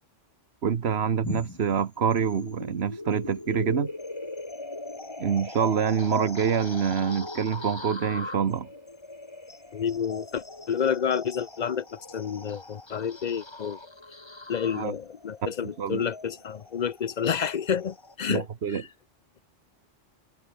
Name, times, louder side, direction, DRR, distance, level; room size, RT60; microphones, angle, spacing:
voice 1, 0.6-3.9 5.2-8.7 14.7-15.0 15.4-15.5 15.8-16.0 18.3-18.8, right 7 dB, 60° right, 1.3 m, -26 dB
sound 1, 1.2-18.1, left 2 dB, 20° left, 1.8 m, -40 dB
voice 2, 9.7-13.8 14.5-18.9, left 7 dB, 45° left, 0.6 m, -29 dB
omnidirectional pair, 1.2 m